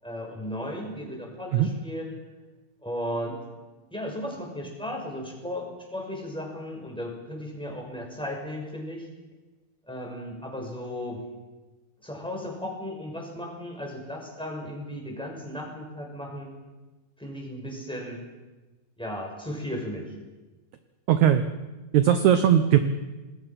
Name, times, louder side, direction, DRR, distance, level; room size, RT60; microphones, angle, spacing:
voice 1, 0.0-2.1 2.8-3.4 3.9-9.1 9.9-11.2 12.0-16.5 17.2-18.2 19.0-20.1, left 1 dB, ahead, 0 dB, 5.5 m, -35 dB
voice 2, 21.1-21.4 21.9-22.8, right 10 dB, 70° right, 9 dB, 2.0 m, -19 dB
27.0 x 20.5 x 5.9 m, 1.2 s
omnidirectional pair, 4.2 m